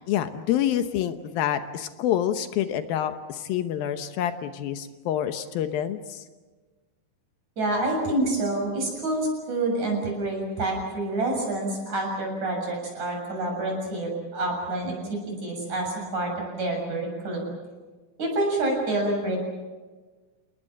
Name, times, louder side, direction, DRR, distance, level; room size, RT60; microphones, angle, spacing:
voice 1, 0.1-6.2, left 10 dB, 75° left, 9 dB, 2.7 m, -27 dB
voice 2, 7.6-17.5 18.2-19.4, right 2 dB, 50° right, 1 dB, 8.4 m, -27 dB
29.0 x 19.5 x 7.6 m, 1.3 s
omnidirectional pair, 4.4 m